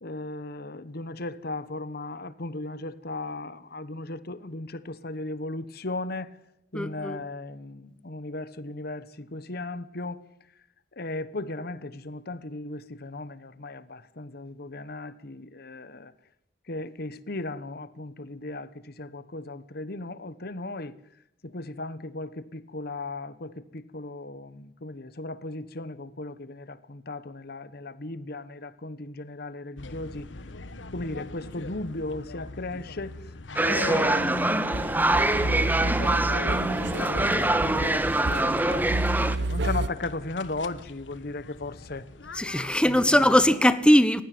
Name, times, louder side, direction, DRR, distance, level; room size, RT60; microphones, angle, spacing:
voice 1, 0.0-6.3 6.7-10.2 11.0-16.1 16.7-21.0 21.4-30.3 30.9-33.2 33.6-42.1 42.4-42.5 42.9-43.2, left 2 dB, 55° left, 1.2 m, -36 dB
voice 2, 6.7-7.2 42.3-44.2, equal, 5° left, 1.3 m, -20 dB
sound 1, 29.8-43.5, left 2 dB, 85° left, 1.3 m, -44 dB
sound 2, 33.6-39.4, right 1 dB, 10° right, 1.4 m, -24 dB
sound 3, 34.7-39.9, right 2 dB, 70° right, 1.0 m, -30 dB
29.5 x 16.5 x 9.4 m
head